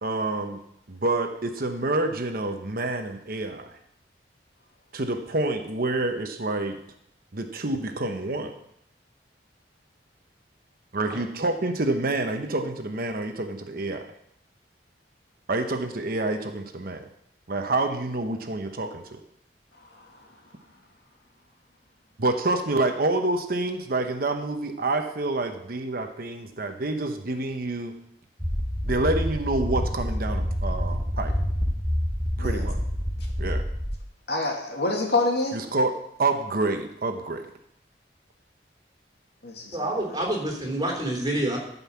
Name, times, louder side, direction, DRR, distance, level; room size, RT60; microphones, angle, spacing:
voice 1, 0.0-0.6 0.9-3.8 4.9-6.8 7.3-8.5 10.9-14.1 15.5-17.0 17.5-19.2 22.2-27.9 28.8-31.3 32.4-32.8 33.4-33.6 35.5-37.5, right 2 dB, 55° right, 5 dB, 1.0 m, -27 dB
sound 1, 28.4-34.0, equal, ahead, 0.8 m, -27 dB
voice 2, 34.3-35.6 39.4-40.2, left 2 dB, 65° left, 0 dB, 2.6 m, -27 dB
voice 3, 39.7-41.6, right 1 dB, 25° right, -1 dB, 3.4 m, -27 dB
14.0 x 5.6 x 7.0 m, 0.75 s
head